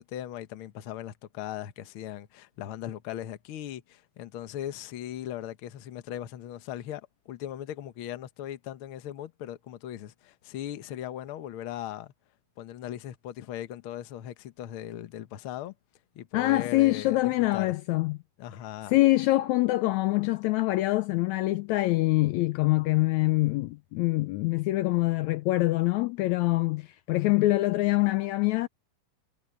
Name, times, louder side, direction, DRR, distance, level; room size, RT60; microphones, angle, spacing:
voice 1, 0.0-12.1 12.6-15.7 16.1-17.7 18.4-19.0, left 12 dB, 60° left, 1.5 m, -38 dB
voice 2, 16.3-18.2 18.9-28.7, left 19 dB, 80° left, 1.8 m, -25 dB
omnidirectional pair, 3.5 m